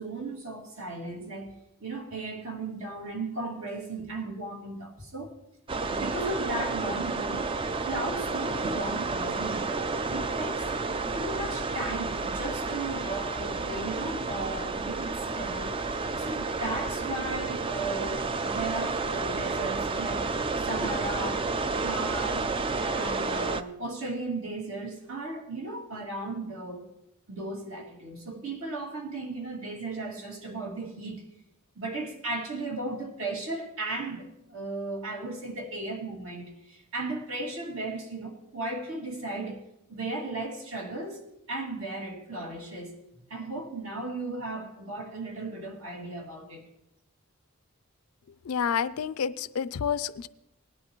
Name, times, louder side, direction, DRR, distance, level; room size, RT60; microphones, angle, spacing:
voice 1, 0.0-1.5 1.8-5.3 5.9-7.5 7.8-9.7 10.1-10.7 11.2-20.3 20.6-22.5 22.8-26.9 27.3-31.3 31.8-39.6 39.9-41.2 41.5-42.9 43.3-46.7, right 2 dB, 65° right, 0 dB, 2.4 m, -36 dB
sound 1, 5.7-23.6, right 3 dB, 25° right, 0.3 m, -31 dB
voice 2, 48.5-50.3, left 7 dB, 80° left, 16 dB, 0.4 m, -29 dB
19.0 x 10.5 x 3.1 m, 0.85 s
head